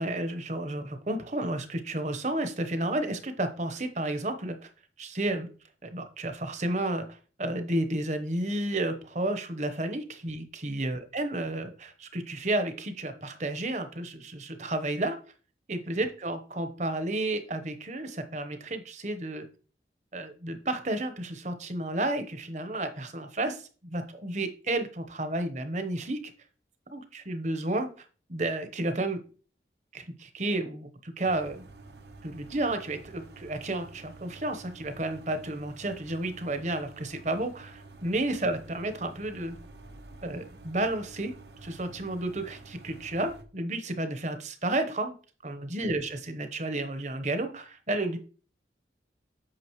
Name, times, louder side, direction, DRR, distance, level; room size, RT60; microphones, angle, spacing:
voice 1, 0.0-4.7 5.0-5.5 5.8-15.2 15.7-19.4 20.1-26.2 26.9-29.2 29.9-31.6 32.2-39.6 40.2-41.3 41.6-45.1 45.4-48.2, right 1 dB, 40° right, 8 dB, 1.0 m, -32 dB
sound 1, 31.3-43.4, right 3 dB, 75° right, 1.0 m, -49 dB
8.9 x 6.1 x 3.1 m, 0.38 s
head